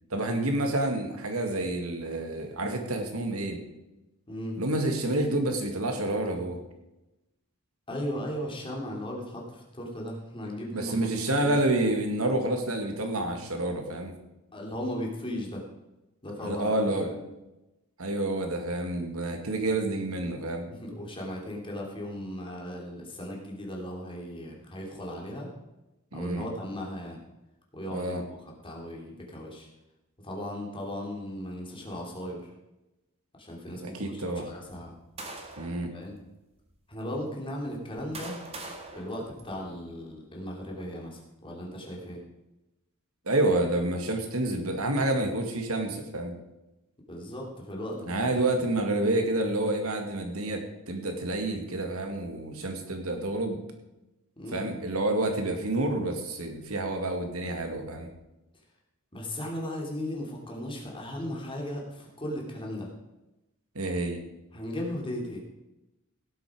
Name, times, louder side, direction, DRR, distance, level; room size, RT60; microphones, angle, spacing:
voice 1, 0.1-3.6 4.6-6.6 10.7-14.1 16.4-17.1 18.0-20.7 26.1-26.5 27.9-28.2 33.8-34.5 35.6-35.9 43.3-46.3 48.0-53.6 54.5-58.1 63.8-64.2, right 2 dB, 75° right, 4 dB, 2.2 m, -28 dB
voice 2, 4.3-4.6 7.9-11.6 14.5-15.6 16.2-16.7 17.0-17.2 20.7-25.5 26.1-27.2 27.7-29.7 30.2-32.4 33.4-34.9 35.9-36.2 36.9-38.4 38.9-42.2 47.1-48.3 54.4-54.6 59.1-62.9 64.5-65.4, left 1 dB, 25° left, -1 dB, 3.1 m, -37 dB
sound 1, 34.7-35.8 36.6-36.7 37.6-40.0, right 2 dB, 30° right, 2.0 m, -43 dB
17.0 x 7.9 x 5.1 m, 0.98 s
head